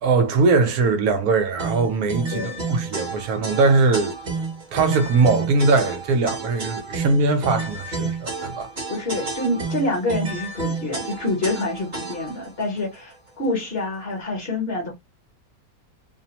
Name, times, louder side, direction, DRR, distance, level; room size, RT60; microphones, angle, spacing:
voice 1, 0.0-4.2 4.7-8.7, right 3 dB, 80° right, 1.1 m, -21 dB
sound 1, 1.6-12.5, right 4 dB, 35° right, 1.1 m, -30 dB
voice 2, 2.3-2.6 8.9-14.9, left 2 dB, 45° left, 1.0 m, -27 dB
2.8 x 2.0 x 2.8 m
omnidirectional pair, 1.6 m